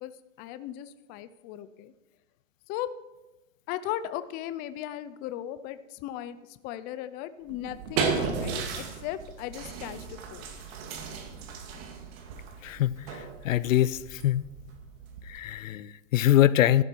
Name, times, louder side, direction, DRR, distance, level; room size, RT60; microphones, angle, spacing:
voice 1, 0.0-1.9 2.7-2.9 3.7-10.8, left 12 dB, 25° left, 13 dB, 0.5 m, -37 dB
sound 1, 7.5-15.6, right 5 dB, 50° right, 2.3 m, -35 dB
voice 2, 12.6-14.4 15.2-16.8, left 13 dB, 80° left, 18 dB, 0.7 m, -24 dB
14.0 x 12.0 x 4.5 m, 1.1 s
hypercardioid pair, 135°, 39 cm